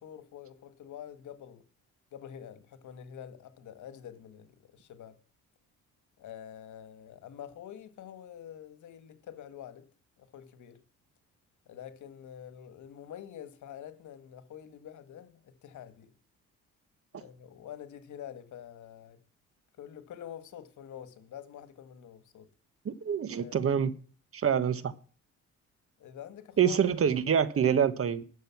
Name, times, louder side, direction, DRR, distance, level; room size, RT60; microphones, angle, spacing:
voice 1, 0.0-1.6 2.1-5.2 6.2-9.9 10.2-10.8 11.7-16.1 17.1-19.2 19.8-22.5 23.4-23.7 26.0-26.8 27.3-27.5, left 9 dB, 75° left, 1.8 m, -47 dB
voice 2, 22.8-23.9 24.3-24.9 26.6-28.2, right 8 dB, 50° right, 1.4 m, -26 dB
12.0 x 6.7 x 7.2 m
cardioid pair, 90°, 30 cm